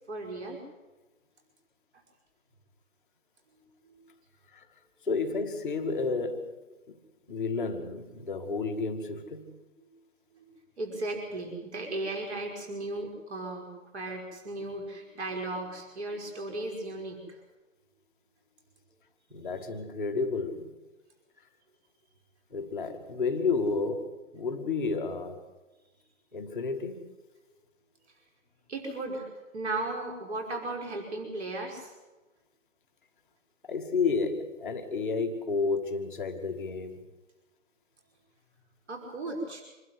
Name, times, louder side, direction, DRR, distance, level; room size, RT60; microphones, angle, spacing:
voice 1, 0.1-0.6 3.9-4.0 9.8-9.9 10.3-10.4 10.8-17.4 28.7-31.9 38.9-39.6, right 2 dB, 55° right, 5.6 m, -36 dB
voice 2, 5.0-6.6 6.9-7.0 7.3-9.5 19.3-20.7 22.5-25.4 26.3-27.1 33.7-37.1, left 4 dB, ahead, 1.0 m, -31 dB
26.0 x 12.5 x 9.6 m
hypercardioid pair, 160°, 39 cm